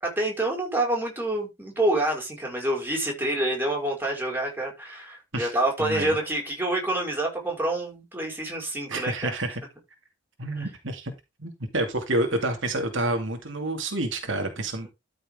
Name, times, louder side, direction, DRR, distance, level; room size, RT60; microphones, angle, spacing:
voice 1, 0.0-9.3 10.6-10.7, right 1 dB, 10° right, 5.5 m, -27 dB
voice 2, 5.8-6.2 8.9-9.6 10.4-11.1 11.4-14.9, right 2 dB, 70° right, 2.4 m, -28 dB
13.0 x 6.6 x 3.8 m
head